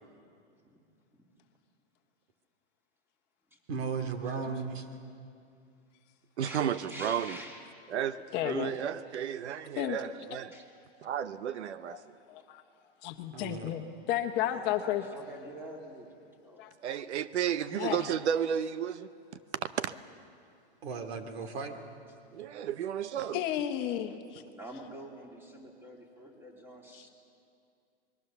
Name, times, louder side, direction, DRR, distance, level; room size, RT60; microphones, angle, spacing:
voice 1, 3.7-4.9 13.3-13.8 20.8-21.8, right 5 dB, 65° right, 6 dB, 2.7 m, -36 dB
voice 2, 4.4-4.7 6.4-7.6 8.0-8.3 10.5-10.7 14.4-16.1 16.4-16.6 24.5-27.1, equal, 5° right, 0 dB, 3.1 m, -47 dB
voice 3, 6.4-7.4 7.9-10.6 11.0-12.0 16.8-19.1 19.5-19.9 22.3-23.4, right 9 dB, 85° right, 13 dB, 0.9 m, -33 dB
voice 4, 8.3-8.8 9.8-10.0 11.9-12.0 12.3-12.6 13.0-15.0 16.6-16.7 17.7-18.0 23.3-24.4, left 12 dB, 30° left, 5 dB, 1.2 m, -32 dB
27.0 x 21.5 x 6.9 m, 2.4 s
hypercardioid pair, 145°, 33 cm